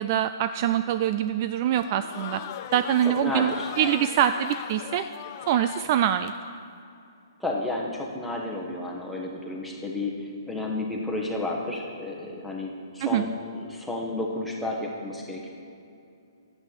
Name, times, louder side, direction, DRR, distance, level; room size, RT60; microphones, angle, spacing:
voice 1, 0.0-2.4 2.7-5.0 5.5-6.3 13.0-13.3, right 10 dB, 40° right, 10 dB, 0.3 m, -24 dB
Crowd, 1.7-6.6, left 12 dB, 40° left, 0.4 m, -39 dB
voice 2, 3.0-3.7 7.4-15.5, left 2 dB, ahead, -2 dB, 1.5 m, -32 dB
11.0 x 8.2 x 6.0 m, 2.6 s
hypercardioid pair, 135°, 2 cm